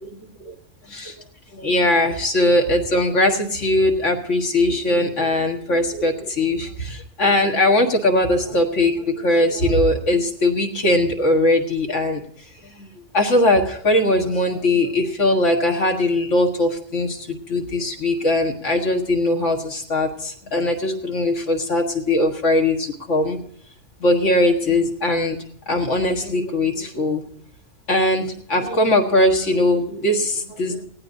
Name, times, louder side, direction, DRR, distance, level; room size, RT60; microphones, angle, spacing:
voice 1, 0.0-0.5 0.9-1.2 1.5-12.2 12.6-12.9 13.1-23.4 24.0-25.4 25.7-27.2 27.9-30.9, left 1 dB, 70° left, 2 dB, 2.0 m, -20 dB
19.5 x 16.0 x 2.7 m, 0.66 s
omnidirectional pair, 1.3 m